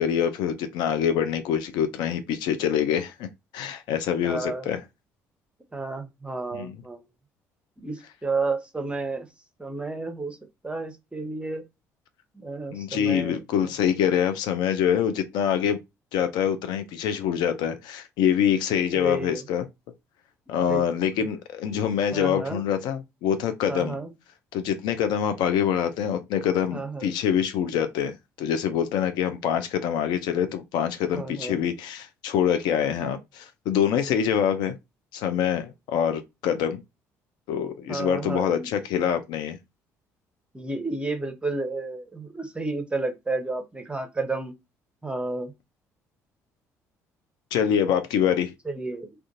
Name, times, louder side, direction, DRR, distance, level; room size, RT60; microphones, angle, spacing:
voice 1, 0.0-3.3 3.5-4.8 6.5-6.8 12.7-15.8 16.1-19.7 20.5-24.0 24.5-34.7 35.1-36.8 37.5-39.6 47.5-48.5, left 8 dB, 65° left, 0.4 m, -25 dB
voice 2, 4.2-4.7 5.7-7.0 7.8-9.3 9.6-10.4 10.6-11.6 12.4-13.4 18.9-19.4 20.7-20.8 22.1-22.6 23.7-24.1 26.7-27.1 31.1-31.6 37.9-38.7 40.5-44.5 45.0-45.5 48.7-49.1, right 3 dB, 15° right, 0.7 m, -31 dB
2.4 x 2.2 x 2.5 m
hypercardioid pair, 50°, 8 cm